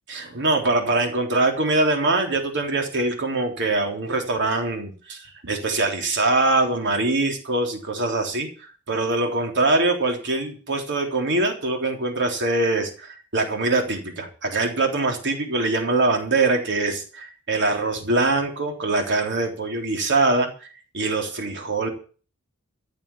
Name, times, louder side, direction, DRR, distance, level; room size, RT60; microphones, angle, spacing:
voice 1, 0.1-20.7 20.9-21.9, right 2 dB, 55° right, 3 dB, 3.6 m, -23 dB
14.0 x 7.4 x 8.4 m, 0.39 s
head